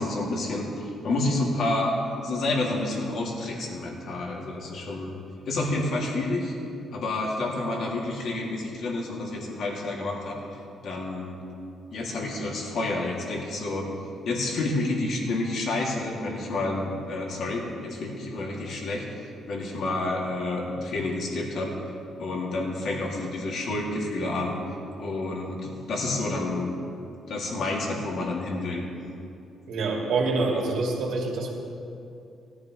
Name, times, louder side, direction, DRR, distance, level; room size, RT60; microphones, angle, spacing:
voice 1, 0.0-5.2 5.5-6.5 6.9-10.4 10.8-11.4 11.9-13.9 14.3-19.0 19.5-21.7 22.2-24.6 25.0-26.7 27.3-28.8, left 2 dB, 65° left, -2 dB, 2.4 m, -29 dB
voice 2, 29.7-31.5, right 3 dB, 80° right, -3 dB, 2.6 m, -26 dB
18.0 x 13.0 x 3.1 m, 2.7 s
cardioid pair, 90°, 0 cm